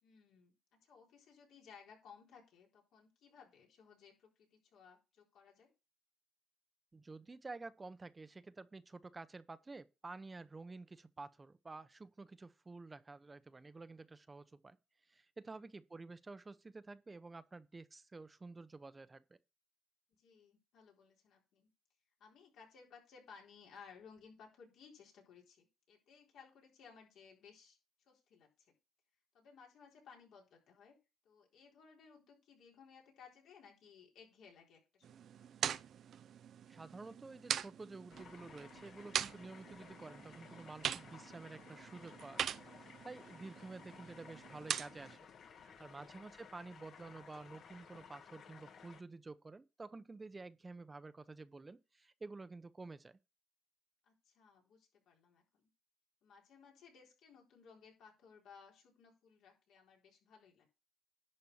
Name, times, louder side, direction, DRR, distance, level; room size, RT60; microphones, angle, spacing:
voice 1, 0.0-0.5 0.8-5.7 15.4-15.7 20.1-21.7 22.2-28.7 29.3-31.0 31.2-35.5 43.2-43.5 45.9-46.1 54.0-55.7 56.2-60.7, left 6 dB, 75° left, 4.1 m, -60 dB
voice 2, 6.9-14.8 15.1-19.4 36.7-45.3 45.6-53.2, right 3 dB, 25° right, 0.7 m, -51 dB
sound 1, 35.0-45.2, right 9 dB, 65° right, 0.5 m, -43 dB
sound 2, 38.1-49.0, left 6 dB, 60° left, 1.4 m, -57 dB
11.0 x 4.2 x 6.9 m
cardioid pair, 85°, 0 cm